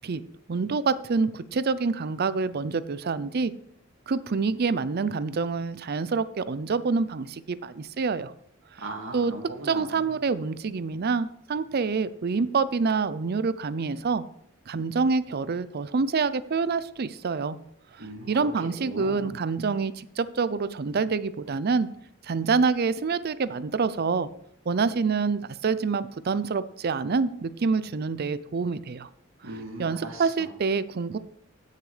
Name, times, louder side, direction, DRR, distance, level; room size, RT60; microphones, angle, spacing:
voice 1, 0.5-3.5 4.1-8.3 9.1-9.3 9.6-14.2 14.7-17.6 18.0-21.9 22.2-24.3 24.7-29.1 29.8-31.2, right 4 dB, 50° right, 15 dB, 0.5 m, -27 dB
voice 2, 8.8-10.1 18.0-19.2 29.4-30.5, right 2 dB, 80° right, 1 dB, 2.2 m, -39 dB
15.5 x 6.6 x 3.3 m, 0.70 s
head